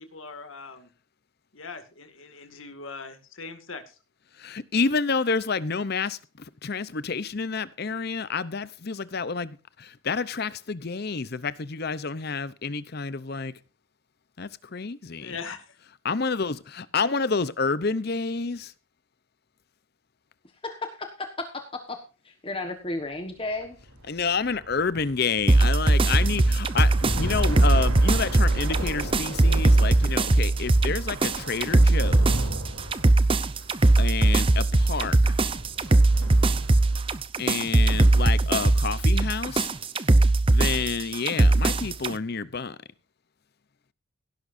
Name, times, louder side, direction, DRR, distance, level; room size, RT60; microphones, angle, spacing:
voice 1, 0.1-0.9 1.5-3.9 15.2-15.8, left 4 dB, 65° left, 2.2 m, -40 dB
voice 2, 4.4-6.2 6.6-13.5 14.4-15.4 16.0-18.7 24.1-32.5 34.0-35.3 37.4-39.7 40.5-42.8, left 4 dB, 50° left, 0.7 m, -29 dB
voice 3, 20.6-22.0 22.2-23.8, left 2 dB, 25° left, 1.3 m, -33 dB
sound 1, 23.5-37.1, right 1 dB, 85° right, 3.1 m, -34 dB
sound 2, 25.5-42.1, right 2 dB, 25° right, 0.6 m, -20 dB
17.0 x 11.0 x 2.6 m
head